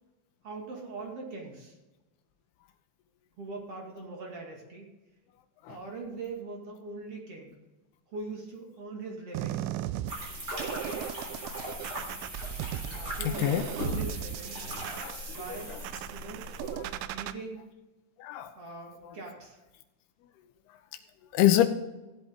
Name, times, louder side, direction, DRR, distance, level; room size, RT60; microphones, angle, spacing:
voice 1, 0.4-1.8 3.4-4.9 5.7-7.5 8.1-9.6 10.7-11.1 13.2-14.6 15.3-15.8 16.1-16.5 17.0-17.7 18.6-19.6, right 3 dB, 40° right, 0 dB, 2.3 m, -41 dB
sound 1, 9.3-17.3, right 12 dB, 85° right, 2.9 m, -37 dB
sound 2, 10.1-17.0, equal, 25° right, 3.1 m, -39 dB
voice 2, 10.5-10.8 11.5-11.6 12.9-13.6 15.0-15.2 18.2-18.5 21.3-21.7, left 12 dB, 85° left, 7 dB, 2.3 m, -26 dB
16.5 x 8.1 x 3.7 m, 1.1 s
omnidirectional pair, 5.3 m